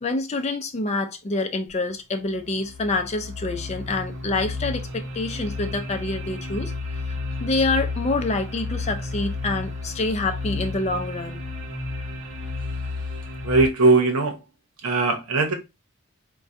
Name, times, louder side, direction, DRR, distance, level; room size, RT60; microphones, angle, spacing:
voice 1, 0.0-6.7 7.4-11.4, left 2 dB, 30° left, 0.4 m, -26 dB
sound 1, 1.7-1.8 2.3-13.7, left 3 dB, 60° right, 0.8 m, -32 dB
voice 2, 13.4-14.4 14.8-15.5, right 3 dB, 90° right, 0.8 m, -19 dB
4.4 x 2.2 x 2.5 m
head